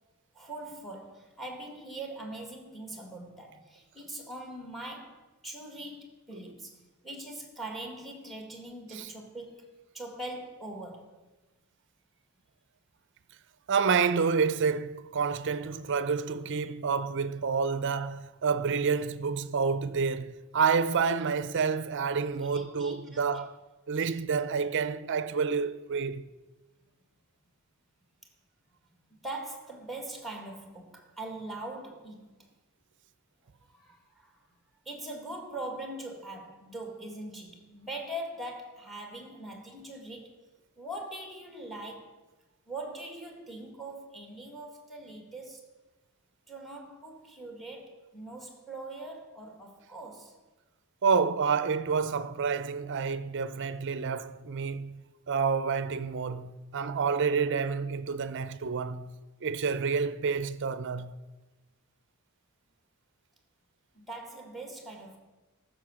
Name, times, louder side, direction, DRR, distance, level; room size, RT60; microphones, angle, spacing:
voice 1, 0.3-6.8 7.0-11.1 22.5-23.4 29.1-32.3 33.7-34.4 34.9-40.4 40.8-42.1 42.7-45.6 46.5-50.4 63.9-65.2, right 1 dB, ahead, 1.8 m, -42 dB
voice 2, 13.7-23.6 23.9-26.2 51.0-61.2, right 5 dB, 55° right, 0.6 m, -29 dB
14.5 x 6.3 x 6.3 m
head